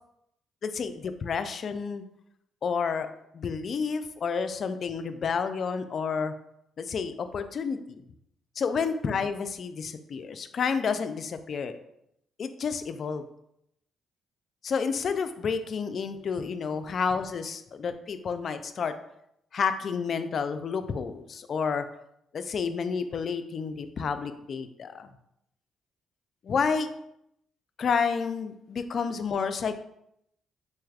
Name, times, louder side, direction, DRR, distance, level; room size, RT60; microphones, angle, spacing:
voice 1, 0.6-2.0 2.6-3.1 3.3-6.3 6.8-8.0 8.6-11.7 12.4-13.2 14.6-19.0 19.5-21.9 22.3-25.1 26.4-26.9 27.8-29.7, left 5 dB, 55° left, 10 dB, 0.3 m, -30 dB
4.1 x 3.2 x 2.3 m, 0.79 s
cardioid pair, 90°, 0 cm